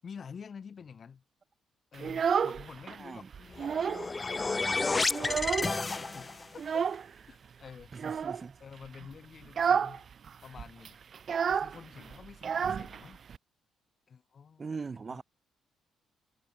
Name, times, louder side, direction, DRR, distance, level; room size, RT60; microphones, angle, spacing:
voice 1, 0.0-1.2 1.9-5.0 5.6-6.8 7.3-8.1 8.6-10.1 10.4-11.0 11.5-13.2 14.1-14.7 15.1-15.2, left 6 dB, 45° left, 6.0 m, -49 dB
Child speech kid speaking, 1.9-3.0 3.3-4.1 4.4-4.5 4.8-5.9 6.6-7.1 7.9-8.4 8.9-9.1 9.4-10.0 10.2-10.3 10.6-13.4, right 7 dB, 50° right, 0.9 m, -30 dB
sound 1, 3.5-6.6, left 3 dB, 25° left, 1.9 m, -31 dB
voice 2, 8.0-8.5 14.6-15.2, right 4 dB, 35° right, 5.4 m, -40 dB
cardioid pair, 90°, 0 cm